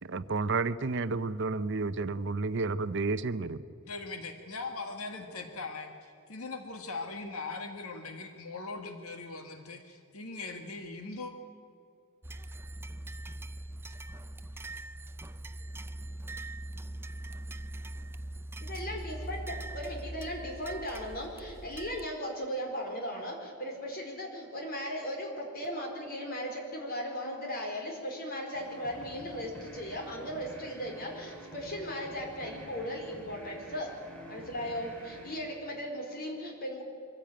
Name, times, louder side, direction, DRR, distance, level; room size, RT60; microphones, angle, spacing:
voice 1, 0.0-3.6, right 3 dB, 55° right, 13 dB, 0.6 m, -31 dB
voice 2, 3.9-5.9 6.3-11.3, left 3 dB, 75° left, 5 dB, 1.8 m, -40 dB
sound 1, 12.2-22.1, right 1 dB, 10° right, 0.4 m, -41 dB
voice 3, 18.6-33.9 34.3-36.8, equal, 45° left, 1 dB, 4.5 m, -37 dB
sound 2, 28.5-36.3, right 1 dB, 5° left, 3.5 m, -49 dB
24.0 x 15.5 x 8.8 m, 2.4 s
head